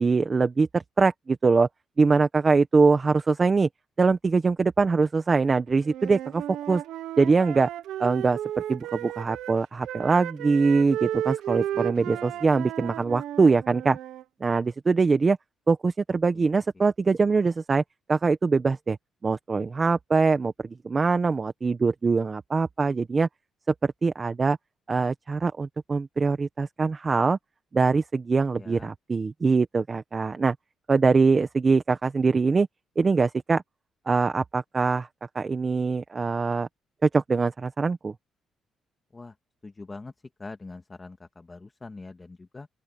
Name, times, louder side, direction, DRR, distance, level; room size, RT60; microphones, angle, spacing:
voice 1, 0.0-1.7 2.0-3.7 4.0-6.8 7.2-7.7 8.0-8.4 8.7-14.0 14.4-15.4 15.7-17.8 18.1-19.0 19.2-23.3 23.8-24.6 24.9-27.4 27.7-30.5 30.9-32.7 33.0-33.6 34.1-35.1 35.3-36.7 37.0-38.1, right 4 dB, 30° right, 1.3 m, -23 dB
Wind instrument woodwind instrument, 5.8-9.6 9.8-14.2, right 12 dB, 80° right, 0.9 m, -34 dB
voice 2, 11.5-12.4 16.3-16.5 16.7-16.9 28.5-28.9 39.1-39.4 39.6-40.1 40.4-42.7, left 3 dB, 25° left, 2.2 m, -44 dB
open air
cardioid pair, 90°, 0 cm